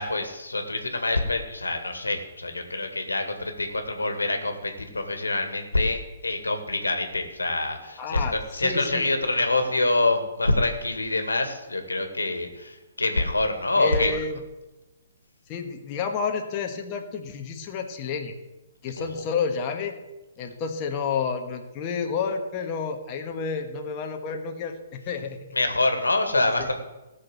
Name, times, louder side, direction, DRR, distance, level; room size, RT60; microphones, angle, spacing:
voice 1, 0.0-14.1 19.0-19.1 25.5-26.7, left 2 dB, 85° left, 6 dB, 2.0 m, -26 dB
voice 2, 8.0-9.0 13.7-14.4 15.5-18.3 18.8-20.0 20.4-25.6 26.6-26.7, left 5 dB, 30° left, 3 dB, 1.5 m, -30 dB
16.0 x 6.3 x 7.8 m, 1.1 s
figure-of-eight pair, 125°, 0 cm